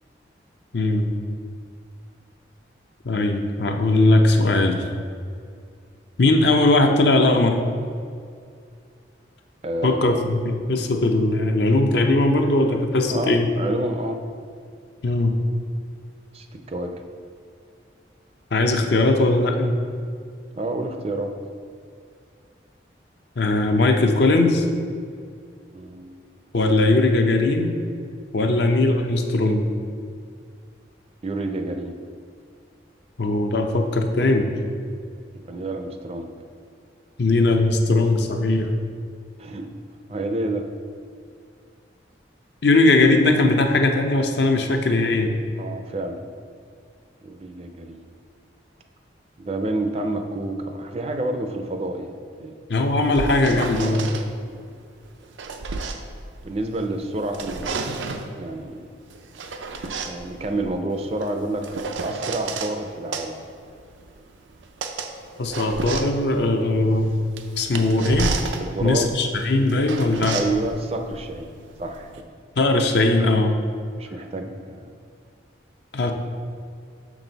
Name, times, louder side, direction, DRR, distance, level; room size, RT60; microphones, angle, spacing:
voice 1, 0.7-1.1 3.0-4.8 6.2-7.6 9.8-13.5 15.0-15.3 18.5-19.7 23.4-24.7 26.5-27.7 28.3-29.7 33.2-34.5 37.2-38.7 42.6-45.3 52.7-54.2 65.4-67.2 67.6-68.4 68.8-70.4 72.6-73.5 75.9-76.1, left 2 dB, 65° left, 4 dB, 0.6 m, -19 dB
voice 2, 9.6-10.4 13.1-14.2 16.3-16.9 20.6-21.3 25.7-26.1 28.4-28.7 31.2-32.0 35.4-36.3 39.4-39.7 40.1-40.7 45.6-46.2 47.2-48.1 49.4-52.5 54.5-54.7 56.4-58.1 58.4-58.8 60.0-63.4 66.5-66.8 68.6-69.1 70.3-71.5 71.8-72.1 74.0-74.9, right 2 dB, 35° right, 5 dB, 0.4 m, -29 dB
sound 1, 52.9-54.2 55.1-56.9 57.2-58.3 59.1-62.7 63.1-72.2, right 4 dB, 85° right, 0.5 m, -32 dB
6.1 x 6.1 x 3.9 m, 2.3 s
head